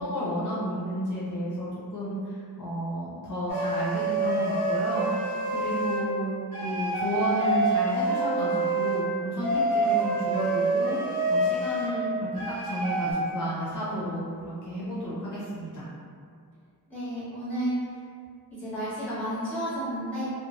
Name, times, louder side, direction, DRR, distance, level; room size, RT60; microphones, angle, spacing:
voice 1, 0.0-6.3 6.6-12.3 12.6-15.9, equal, 55° left, -9 dB, 0.6 m, -32 dB
sound 1, 3.5-6.1 6.5-9.0 9.4-11.9 12.4-13.1, right 2 dB, 65° right, 0.8 m, -27 dB
voice 2, 16.9-17.9 18.6-20.2, equal, 5° left, -13 dB, 1.4 m, -31 dB
3.1 x 2.0 x 2.4 m, 2.3 s
wide cardioid pair, 125°, 37 cm